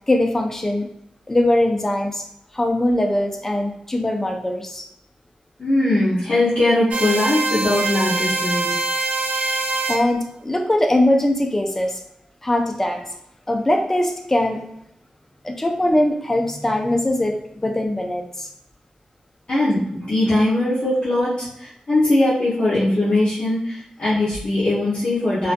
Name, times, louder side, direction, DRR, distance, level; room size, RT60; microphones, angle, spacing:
voice 1, 0.1-0.9 1.3-2.2 2.5-4.8 9.9-12.0 12.4-13.0 13.5-14.6 15.4-17.4 17.6-18.5, left 1 dB, 15° left, 2 dB, 0.4 m, -21 dB
voice 2, 5.6-8.8 19.5-25.5, left 1 dB, 50° left, -9 dB, 0.7 m, -20 dB
sound 1, 6.9-10.0, right 3 dB, 65° right, 0.3 m, -23 dB
2.4 x 2.3 x 2.5 m, 0.74 s
wide cardioid pair, 135°, 2 cm